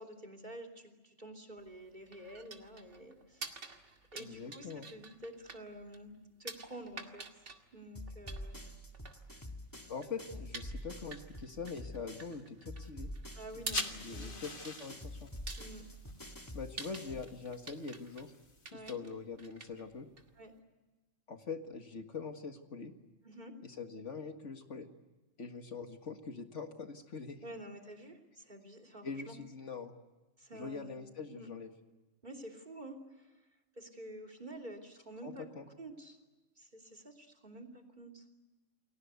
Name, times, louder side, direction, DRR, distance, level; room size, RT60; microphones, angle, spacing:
voice 1, 0.0-3.7 4.1-6.1 6.4-7.5 7.7-8.6 13.3-14.5 15.6-15.9 18.7-19.0 20.3-20.5 23.2-23.5 27.4-29.4 30.4-31.0 31.3-31.5 32.2-33.5 33.7-35.5 35.8-36.2 36.5-38.3, right 1 dB, 35° right, 8 dB, 3.3 m, -49 dB
sound 1, 1.6-20.6, right 3 dB, 65° right, 2.5 m, -49 dB
voice 2, 4.2-4.9 9.9-13.1 13.9-15.3 16.5-18.3 18.7-20.1 21.3-22.9 23.6-24.9 25.4-27.4 29.0-29.9 30.5-31.7 35.2-35.7, left 5 dB, 65° left, 6 dB, 2.0 m, -43 dB
sound 2, 7.9-12.4 12.6-17.3, equal, 15° left, 2.1 m, -47 dB
sound 3, 13.5-18.7, left 3 dB, 40° left, 1.9 m, -47 dB
29.5 x 22.0 x 8.2 m, 1.2 s
omnidirectional pair, 1.3 m